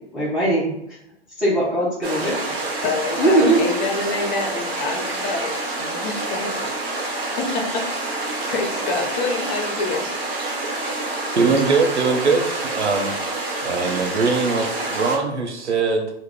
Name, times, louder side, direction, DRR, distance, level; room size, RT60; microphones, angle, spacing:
voice 1, 0.1-0.7 1.4-2.4 3.2-3.6, right 1 dB, ahead, -9 dB, 0.3 m, -19 dB
sound 1, 2.0-15.2, right 2 dB, 60° right, 0.9 m, -27 dB
voice 2, 2.8-6.7 7.0-10.0, left 3 dB, 40° left, 2 dB, 0.6 m, -28 dB
voice 3, 11.3-13.1 13.6-16.1, right 4 dB, 85° right, 2 dB, 0.6 m, -21 dB
2.2 x 2.0 x 3.4 m, 0.77 s
figure-of-eight pair, 110°, 33 cm